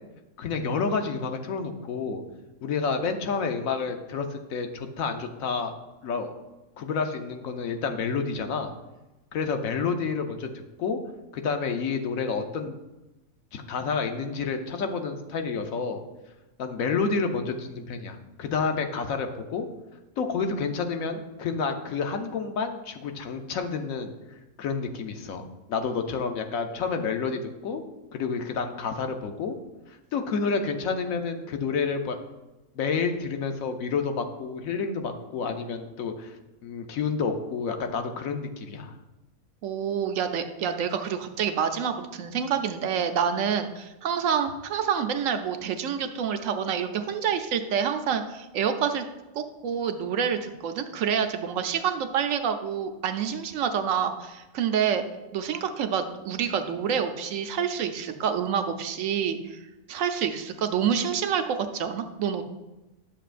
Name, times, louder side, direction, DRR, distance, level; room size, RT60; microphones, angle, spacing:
voice 1, 0.4-2.2 2.6-5.7 6.0-6.3 6.8-8.7 9.3-10.5 10.8-11.0 11.3-12.7 13.5-16.0 16.6-19.7 20.2-27.8 28.1-29.6 30.1-32.2 32.8-36.4 36.6-38.9, left 5 dB, 75° left, 6 dB, 1.1 m, -29 dB
voice 2, 39.6-49.0 49.3-55.0 55.3-59.6 59.9-62.4, right 7 dB, 70° right, 7 dB, 1.0 m, -27 dB
10.0 x 6.7 x 2.5 m, 1.0 s
omnidirectional pair, 1.5 m